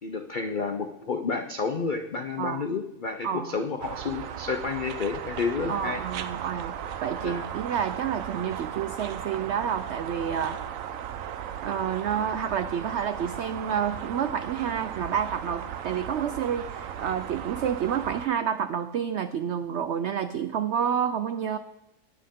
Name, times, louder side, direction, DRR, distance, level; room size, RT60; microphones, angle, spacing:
voice 1, 0.0-6.0 7.2-7.4, left 4 dB, 80° left, 7 dB, 0.4 m, -30 dB
voice 2, 3.2-3.6 5.7-6.8 7.0-10.6 11.6-21.6, right 8 dB, 85° right, 11 dB, 0.6 m, -29 dB
sound 1, 3.8-18.3, right 9 dB, 65° right, 1.0 m, -36 dB
20.0 x 7.7 x 3.6 m, 0.90 s
omnidirectional pair, 1.8 m